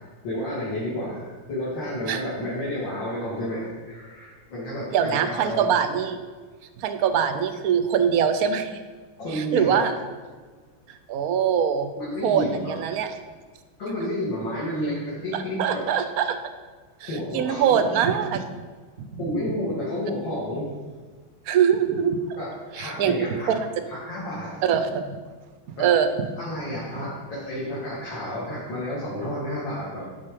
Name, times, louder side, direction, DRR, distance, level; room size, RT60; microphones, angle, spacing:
voice 1, 0.2-5.7 9.2-9.8 12.0-13.0 13.8-15.8 17.0-17.9 19.2-20.7 22.3-22.5 22.7-23.5 23.9-24.6 25.8-25.9 26.4-30.1, left 1 dB, 65° left, -10 dB, 3.0 m, -31 dB
voice 2, 4.9-6.2 6.8-8.8 9.3-10.0 10.9-11.9 12.2-13.2 15.3-16.4 17.0-18.4 19.1-19.2 21.5-22.2 22.7-23.1 23.5-23.6 24.6-25.1 25.8-26.1, right 8 dB, 70° right, 9 dB, 0.9 m, -23 dB
11.5 x 4.0 x 5.2 m, 1.5 s
omnidirectional pair, 2.2 m